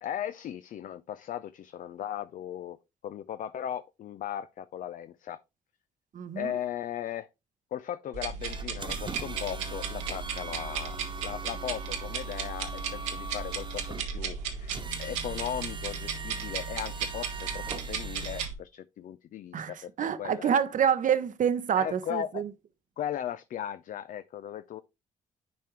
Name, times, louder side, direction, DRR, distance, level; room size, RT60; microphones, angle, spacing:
voice 1, 0.0-2.8 3.0-5.4 6.4-7.3 7.7-19.9 20.2-20.5 21.8-22.4 23.0-24.8, left 10 dB, 50° left, 0.5 m, -37 dB
voice 2, 6.1-6.5 19.5-22.5, right 8 dB, 50° right, 0.9 m, -27 dB
sound 1, 8.1-18.5, right 6 dB, 80° right, 1.2 m, -35 dB
sound 2, 8.4-18.5, right 4 dB, 30° right, 1.2 m, -42 dB
10.0 x 4.4 x 3.1 m
hypercardioid pair, 45°, 17 cm